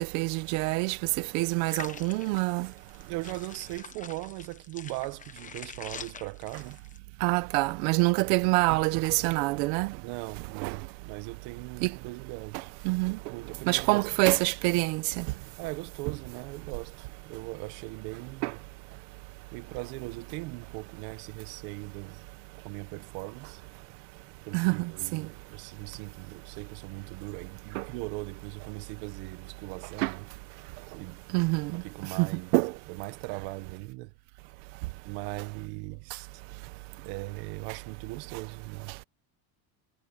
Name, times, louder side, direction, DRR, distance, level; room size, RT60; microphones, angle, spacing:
voice 1, 0.1-1.0 1.3-2.7 7.2-9.9 10.6-10.8 11.8-11.9 12.8-13.2 13.7-15.2 18.4-18.5 24.5-25.2 27.7-27.8 30.0-30.1 31.3-31.8 32.2-32.3 32.5-32.7, right 24 dB, 90° right, 1.1 m, -26 dB
sound 1, 1.7-7.0, left 6 dB, 15° left, 1.1 m, -45 dB
voice 2, 3.0-6.8 8.2-8.3 10.0-12.7 13.3-14.1 15.6-18.6 19.5-22.2 22.6-23.6 24.5-30.3 31.0-31.2 31.8-32.5 32.9-34.1 35.0-36.4 37.0-38.9, right 22 dB, 65° right, 1.4 m, -39 dB
cardioid pair, 170°, 47 cm